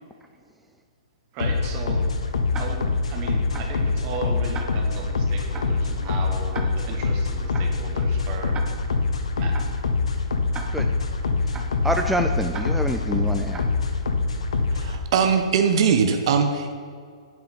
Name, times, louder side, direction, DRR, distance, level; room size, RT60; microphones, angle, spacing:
voice 1, 1.3-2.0 2.5-8.6 9.3-9.5, right 4 dB, 35° right, 2 dB, 1.3 m, -36 dB
sound 1, 1.4-15.0, left 4 dB, 75° left, 0.8 m, -25 dB
Tick-tock, 2.5-3.0 3.5-3.9 4.5-5.0 5.5-5.9 6.5-7.0 7.5-7.9 8.5-9.0 9.5-9.9 10.5-11.0 11.5-11.9 12.5-13.0 13.5-13.9, right 4 dB, 20° right, 0.7 m, -39 dB
voice 2, 11.4-13.6, right 1 dB, 5° right, 4 dB, 0.3 m, -27 dB
voice 3, 14.7-16.7, right 6 dB, 55° right, 6 dB, 0.7 m, -21 dB
8.3 x 4.6 x 5.2 m, 2.1 s
hypercardioid pair, 120°, 3 cm